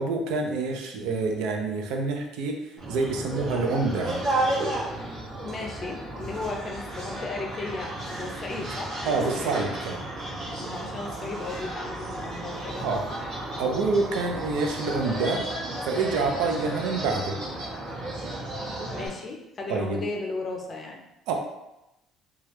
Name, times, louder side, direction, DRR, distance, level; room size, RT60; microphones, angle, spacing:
voice 1, 0.0-2.6 2.9-4.5 9.0-10.0 12.8-13.0 13.6-15.4 15.9-17.3 19.7-20.0 21.3-21.4, right 3 dB, 85° right, 2 dB, 0.5 m, -27 dB
sound 1, 2.8-19.1, right 1 dB, 60° right, 1.2 m, -33 dB
voice 2, 5.4-9.5 10.5-12.9 18.9-21.0, left 3 dB, 25° left, 1 dB, 0.5 m, -35 dB
3.2 x 2.3 x 3.0 m, 0.92 s
cardioid pair, 160°, 0 cm